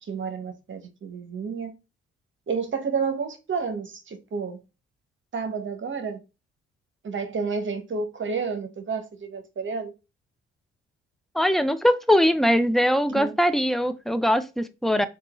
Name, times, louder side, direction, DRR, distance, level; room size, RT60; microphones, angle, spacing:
voice 1, 0.0-1.7 2.5-4.6 5.3-6.2 7.0-9.9 13.1-13.3, right 5 dB, 40° right, 0.9 m, -30 dB
voice 2, 11.3-15.1, equal, ahead, 0.4 m, -21 dB
3.7 x 2.3 x 2.9 m
hypercardioid pair, 50°, 29 cm